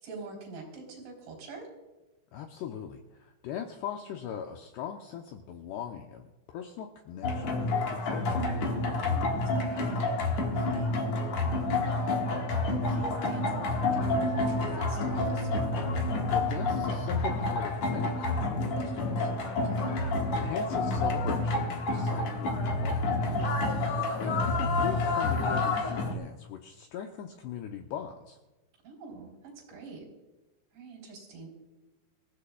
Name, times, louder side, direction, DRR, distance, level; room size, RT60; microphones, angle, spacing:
voice 1, 0.0-1.7 9.0-10.0 10.4-10.9 11.8-12.2 12.7-15.5 19.4-19.9 23.3-23.9 28.8-30.1 30.7-31.5, right 3 dB, 65° right, 0 dB, 5.9 m, -45 dB
voice 2, 2.3-8.5 16.3-23.0 24.2-28.4, left 8 dB, 85° left, 3 dB, 2.4 m, -40 dB
sound 1, 7.2-26.1, left 2 dB, 65° left, 1.7 m, -29 dB
25.0 x 15.5 x 2.3 m, 1.1 s
omnidirectional pair, 5.7 m